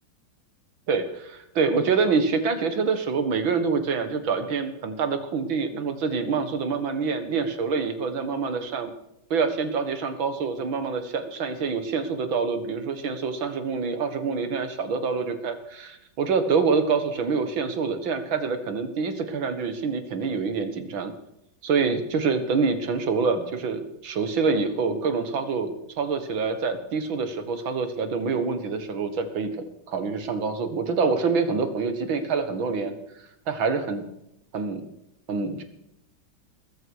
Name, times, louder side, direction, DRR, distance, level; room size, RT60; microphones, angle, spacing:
voice 1, 0.9-8.9 9.3-21.1 21.6-29.5 29.9-32.9 33.5-34.0 34.5-34.9 35.3-35.6, right 5 dB, 75° right, 9 dB, 2.5 m, -26 dB
20.5 x 14.0 x 4.8 m, 0.80 s
omnidirectional pair, 2.2 m